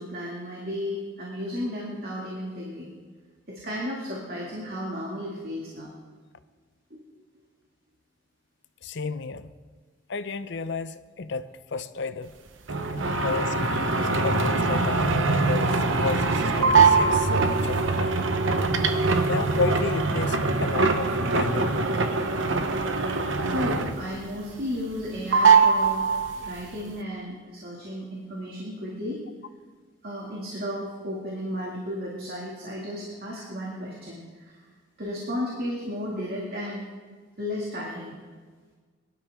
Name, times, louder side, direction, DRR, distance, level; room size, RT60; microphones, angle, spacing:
voice 1, 0.0-2.9 3.5-5.9 6.9-7.0 13.0-13.3 19.0-19.3 23.4-29.2 30.0-34.5 35.0-36.8 37.4-38.2, left 1 dB, 50° right, -3 dB, 2.4 m, -34 dB
voice 2, 8.8-9.5 10.1-12.3 13.2-13.8 14.1-18.2 19.3-21.9, left 4 dB, 60° left, 13 dB, 0.6 m, -32 dB
sound 1, 12.7-24.2 24.5-25.1 25.3-26.6, right 4 dB, 70° right, 1.0 m, -23 dB
22.0 x 11.5 x 3.7 m, 1.5 s
head